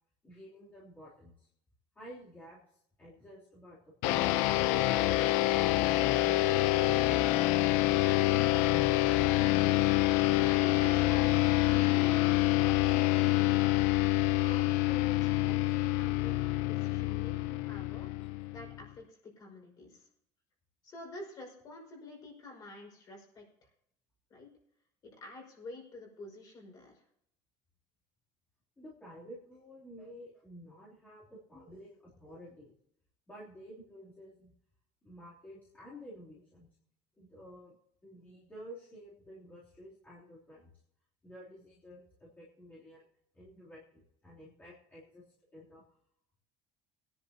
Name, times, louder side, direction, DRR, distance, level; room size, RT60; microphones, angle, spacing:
voice 1, 0.2-1.5 1.9-2.6 3.0-5.2 5.5-7.2 12.8-12.9 15.6-15.8 28.8-32.7 33.3-34.5 35.0-36.7 37.2-37.7 38.0-40.7 41.2-43.1 43.3-45.2 45.5-45.8, equal, 10° left, -9 dB, 3.2 m, -51 dB
sound 1, 4.0-18.8, left 17 dB, 80° left, 0.7 m, -27 dB
voice 2, 10.4-13.7 14.4-20.1 20.8-23.7 24.3-24.5 25.0-27.0, left 2 dB, 30° left, 0 dB, 5.4 m, -49 dB
22.0 x 10.5 x 2.9 m, 0.71 s
cardioid pair, 180°, 13 cm